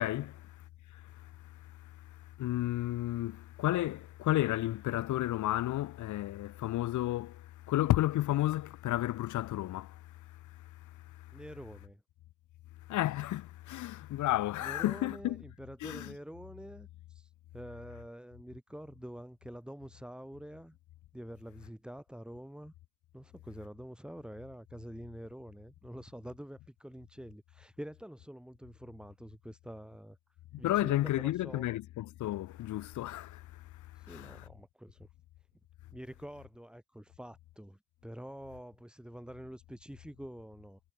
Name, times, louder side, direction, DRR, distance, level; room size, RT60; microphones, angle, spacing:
voice 1, 0.0-11.4 12.8-15.4 15.8-16.1 30.5-34.5, left 15 dB, 75° left, 0.9 m, -33 dB
voice 2, 11.3-12.0 14.6-20.8 21.1-22.7 23.1-30.2 30.6-31.7 34.0-35.1 35.9-40.8, equal, 5° right, 5.6 m, -47 dB
cardioid pair, 90°, 30 cm